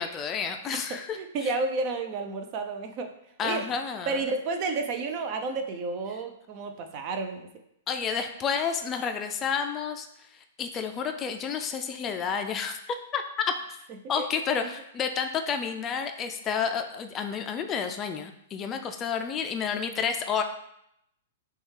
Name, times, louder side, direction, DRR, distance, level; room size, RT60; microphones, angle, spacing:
voice 1, 0.0-1.5 3.4-4.2 7.9-13.8 14.1-20.4, left 6 dB, 25° left, 6 dB, 0.4 m, -30 dB
voice 2, 0.7-3.1 3.4-3.6 4.1-7.5 14.2-14.3 14.6-14.7, right 3 dB, 40° right, 6 dB, 0.5 m, -31 dB
6.0 x 2.3 x 3.3 m, 0.77 s
hypercardioid pair, 115°, 0 cm